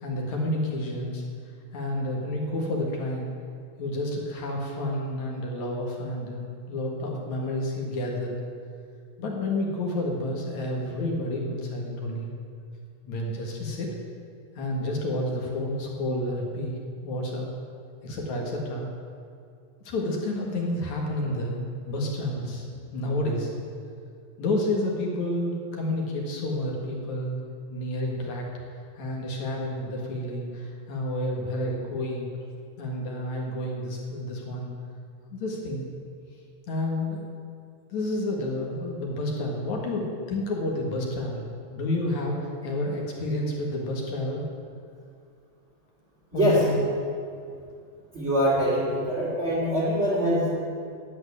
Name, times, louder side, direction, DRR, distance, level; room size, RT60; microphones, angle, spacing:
voice 1, 0.0-1.2 1.7-3.3 3.8-8.3 9.2-12.3 13.0-13.9 14.5-16.8 17.0-17.5 18.0-18.9 19.8-22.7 22.9-23.5 24.4-27.4 27.7-28.5 29.0-32.3 32.8-34.7 35.3-35.8 36.7-37.3 37.9-41.4 41.7-44.4 46.3-46.9, left 1 dB, 55° left, -1 dB, 2.8 m, -30 dB
voice 2, 46.3-46.6 48.1-50.5, equal, 20° right, -9 dB, 2.2 m, -23 dB
11.0 x 7.9 x 9.5 m, 2.4 s
omnidirectional pair, 4.2 m